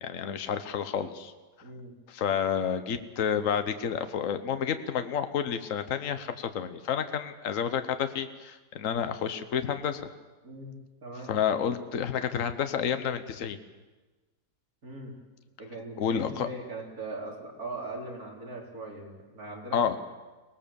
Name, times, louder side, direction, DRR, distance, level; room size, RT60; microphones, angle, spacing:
voice 1, 0.0-1.3 2.1-10.1 11.3-13.6 16.0-16.5 19.7-20.0, left 8 dB, 55° left, 9 dB, 1.4 m, -30 dB
voice 2, 1.6-2.0 2.3-2.4 10.4-10.8 11.0-11.3 14.8-15.2 15.6-19.8, right 2 dB, 60° right, -1 dB, 4.3 m, -40 dB
24.5 x 18.5 x 7.1 m, 1.2 s
omnidirectional pair, 1.8 m